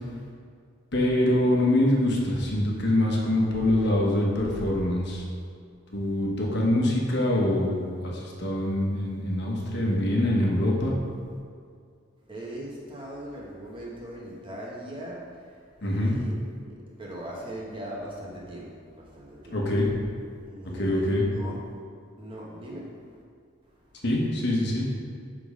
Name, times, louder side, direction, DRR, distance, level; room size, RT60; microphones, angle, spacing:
voice 1, 0.9-5.2 5.9-10.9 15.8-16.1 19.5-19.9 20.8-21.2 24.0-24.9, left 1 dB, 60° left, -2 dB, 1.3 m, -24 dB
voice 2, 12.3-19.6 20.5-21.6 22.2-23.2 23.7-24.0, right 1 dB, 25° right, -4 dB, 1.3 m, -40 dB
7.0 x 3.9 x 5.0 m, 2.2 s
head